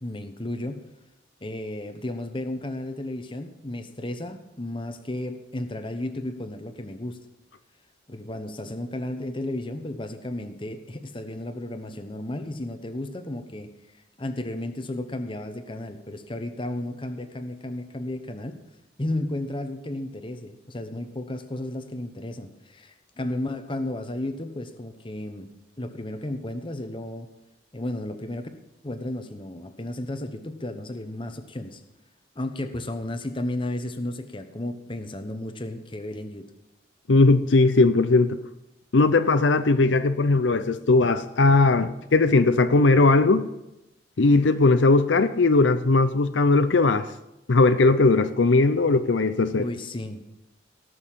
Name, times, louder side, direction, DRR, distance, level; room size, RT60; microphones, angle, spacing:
voice 1, 0.0-0.8 1.4-7.2 8.1-13.7 14.2-18.6 19.0-25.5 25.8-27.3 27.7-28.5 28.8-31.8 32.3-36.5 49.6-50.2, left 1 dB, 25° left, 8 dB, 1.0 m, -33 dB
voice 2, 37.1-38.4 38.9-43.5 44.2-47.1 47.5-49.7, left 3 dB, 75° left, 10 dB, 0.6 m, -19 dB
18.0 x 6.5 x 7.4 m, 0.94 s
head